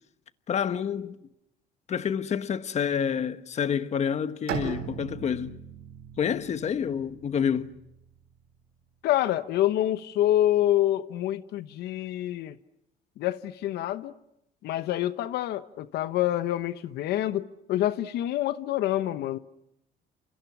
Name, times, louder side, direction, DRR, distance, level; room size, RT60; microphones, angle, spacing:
voice 1, 0.5-1.2 1.9-5.6 6.2-7.7, left 7 dB, 40° left, 1.2 m, -28 dB
Bowed string instrument, 4.5-8.4, right 7 dB, 80° right, 7.4 m, -39 dB
voice 2, 9.0-12.5 13.2-14.1 14.6-19.4, left 13 dB, 75° left, 1.0 m, -27 dB
29.5 x 28.0 x 6.1 m
cardioid pair, 110°, 17 cm